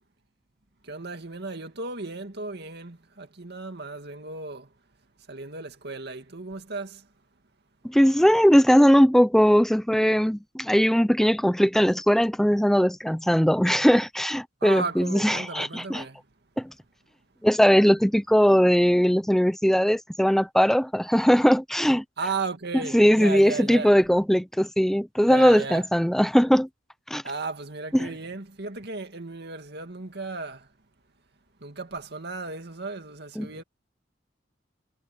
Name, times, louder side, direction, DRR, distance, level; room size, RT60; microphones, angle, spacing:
voice 1, 0.8-4.7 5.3-7.1 14.6-16.2 22.2-23.9 25.2-25.8 27.2-30.7 31.6-33.6, right 3 dB, 60° right, 2.4 m, -35 dB
voice 2, 7.8-16.0 16.6-16.7 17.4-22.0 22.9-26.7 27.1-27.2 27.9-28.1 33.4-33.5, equal, ahead, 0.6 m, -20 dB
head